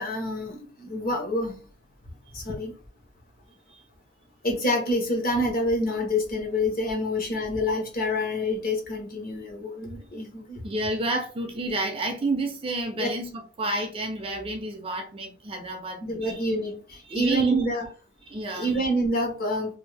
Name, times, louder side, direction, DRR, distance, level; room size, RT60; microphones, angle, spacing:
voice 1, 0.0-1.6 2.3-2.7 4.4-10.6 13.0-13.1 16.0-17.9 18.5-19.8, left 1 dB, 40° left, 0 dB, 1.0 m, -27 dB
voice 2, 10.6-16.4 17.0-17.7 18.2-18.8, right 2 dB, 25° right, 3 dB, 0.4 m, -30 dB
2.6 x 2.6 x 3.3 m, 0.39 s
head